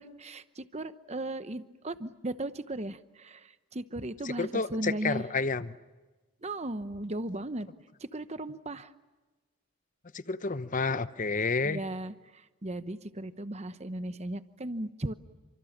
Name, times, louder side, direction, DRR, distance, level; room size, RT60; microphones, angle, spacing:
voice 1, 0.0-5.2 6.4-7.7 8.0-8.9 11.6-15.1, right 1 dB, 30° right, 12 dB, 1.0 m, -36 dB
voice 2, 4.2-5.8 10.1-11.8, left 4 dB, 35° left, 13 dB, 0.8 m, -30 dB
29.5 x 25.0 x 7.4 m, 1.2 s
head